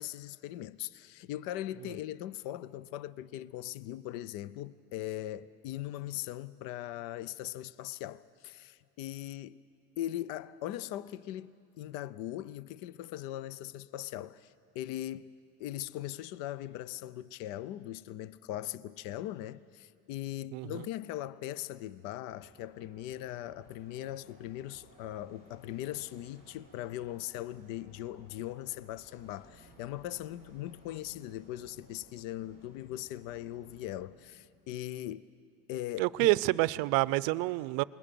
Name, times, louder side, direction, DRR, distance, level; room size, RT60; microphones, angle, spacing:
voice 1, 0.0-9.6 10.0-15.3 15.6-35.3 35.7-36.4, left 13 dB, 60° left, 0.6 m, -40 dB
sound 1, 22.3-34.1, right 1 dB, 25° left, 5.5 m, -59 dB
voice 2, 36.0-37.8, right 21 dB, 65° right, 0.6 m, -27 dB
28.0 x 20.5 x 6.8 m
cardioid pair, 140°, 38 cm